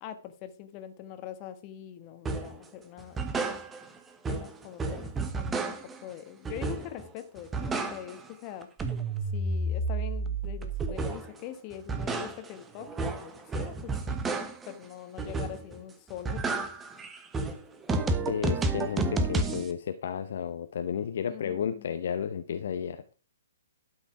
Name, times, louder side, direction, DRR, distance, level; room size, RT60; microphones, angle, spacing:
voice 1, 0.0-3.3 4.3-8.7 9.3-14.2 14.7-16.6 21.2-21.9, left 11 dB, 30° left, 9 dB, 1.3 m, -43 dB
sound 1, 2.3-2.6 3.0-4.0 4.2-6.0 6.5-7.1 7.4-8.3 8.6-11.4 11.7-14.7 15.2-15.8 16.1-19.7, right 3 dB, 10° right, 1.1 m, -31 dB
voice 2, 18.3-23.1, left 8 dB, 50° left, 9 dB, 0.8 m, -32 dB
12.0 x 6.3 x 4.7 m, 0.38 s
figure-of-eight pair, 120°, 0 cm